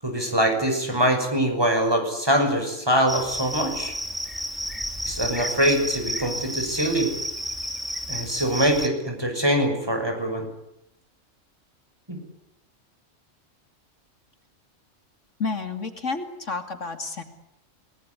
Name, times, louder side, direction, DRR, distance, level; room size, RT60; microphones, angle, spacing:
voice 1, 0.0-3.9 5.0-7.1 8.1-10.5 12.1-12.2, right 1 dB, 20° right, 4 dB, 6.6 m, -23 dB
Cricket, 3.1-8.9, equal, ahead, 2.7 m, -31 dB
voice 2, 15.4-17.2, left 4 dB, 70° left, 7 dB, 3.0 m, -30 dB
28.0 x 20.0 x 9.9 m, 0.83 s
omnidirectional pair, 1.3 m